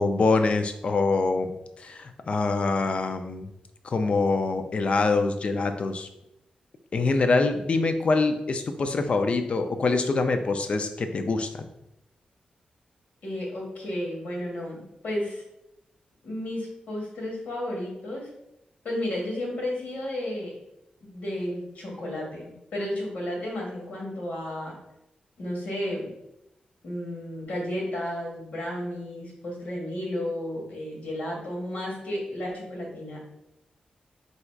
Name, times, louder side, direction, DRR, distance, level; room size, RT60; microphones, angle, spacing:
voice 1, 0.0-1.5 1.8-3.5 3.8-6.1 6.9-11.7, left 3 dB, 45° left, 7 dB, 0.4 m, -25 dB
voice 2, 13.2-15.4 16.2-18.3 18.8-20.5 21.0-24.7 25.4-26.1 26.8-33.2, left 1 dB, 70° left, -2 dB, 1.5 m, -32 dB
4.0 x 2.4 x 4.6 m, 0.84 s
wide cardioid pair, 150°, 3 cm